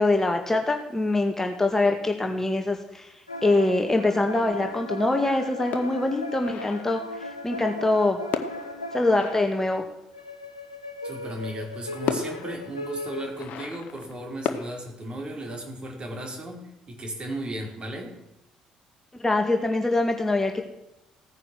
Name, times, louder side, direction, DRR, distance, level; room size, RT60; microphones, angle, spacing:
voice 1, 0.0-3.1 3.4-8.2 8.9-9.8 19.2-20.6, left 2 dB, 15° left, 4 dB, 2.0 m, -24 dB
sound 1, 3.3-9.6 10.1-13.7, left 1 dB, 90° left, 0.8 m, -37 dB
sound 2, 5.7-7.2 8.3-10.3 11.5-11.6 12.1-14.7, left 7 dB, 55° left, 1.1 m, -35 dB
voice 2, 11.0-18.1, right 1 dB, 35° right, 1 dB, 5.0 m, -35 dB
16.5 x 9.8 x 6.4 m, 0.90 s
figure-of-eight pair, 50°, 3 cm